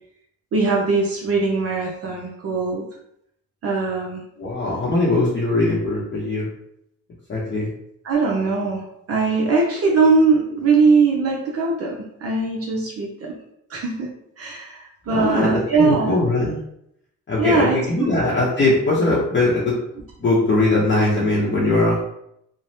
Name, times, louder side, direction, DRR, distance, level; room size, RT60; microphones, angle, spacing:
voice 1, 0.5-2.9 3.6-4.2 8.0-13.4 13.7-14.1 14.4-16.2 17.4-18.1, right 4 dB, 50° right, -2 dB, 0.6 m, -20 dB
voice 2, 4.4-6.5 7.3-7.7 15.1-16.6 17.3-19.8 20.2-22.0, left 2 dB, 40° left, -6 dB, 0.8 m, -20 dB
3.1 x 2.0 x 2.7 m, 0.76 s
cardioid pair, 90°, 30 cm